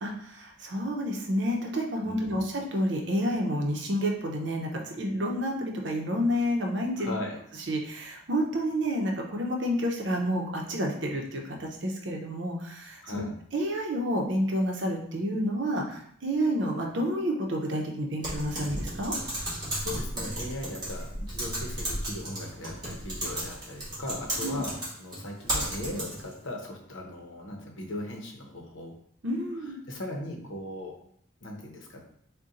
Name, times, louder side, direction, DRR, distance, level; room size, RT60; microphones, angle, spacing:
voice 1, 0.0-7.1 7.7-13.2 13.5-19.2 24.4-24.6 29.2-29.8, equal, 65° right, 1 dB, 0.7 m, -29 dB
voice 2, 2.0-2.4 7.0-7.4 13.0-13.4 19.6-24.7 25.0-28.9 29.9-30.9 31.4-32.0, left 1 dB, 75° left, 1 dB, 0.8 m, -38 dB
Typing, 18.2-26.3, right 1 dB, 20° right, 1.2 m, -34 dB
4.0 x 2.2 x 3.7 m, 0.67 s
head